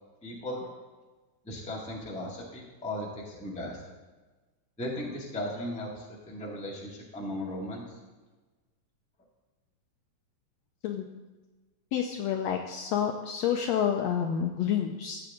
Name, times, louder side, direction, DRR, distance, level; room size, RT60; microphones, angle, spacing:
voice 1, 0.2-0.7 1.4-3.8 4.8-7.8, left 1 dB, 5° left, -3 dB, 1.1 m, -37 dB
voice 2, 11.9-15.2, left 8 dB, 80° left, 3 dB, 1.7 m, -29 dB
14.5 x 8.0 x 3.7 m, 1.2 s
omnidirectional pair, 3.6 m